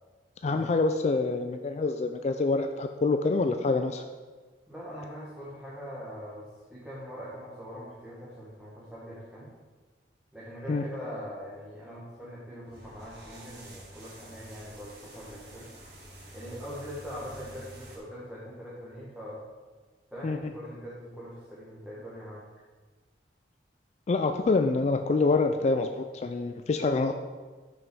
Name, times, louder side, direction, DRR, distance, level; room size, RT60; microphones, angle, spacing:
voice 1, 0.4-4.0 10.7-10.8 20.2-20.4 24.1-27.1, left 3 dB, 40° left, 7 dB, 0.3 m, -26 dB
voice 2, 4.7-9.5 10.3-15.7 16.3-19.4 20.1-22.4, equal, 5° right, -8 dB, 1.4 m, -42 dB
sound 1, 12.6-18.0, right 1 dB, 60° right, 2.5 m, -48 dB
6.2 x 5.2 x 6.1 m, 1.4 s
head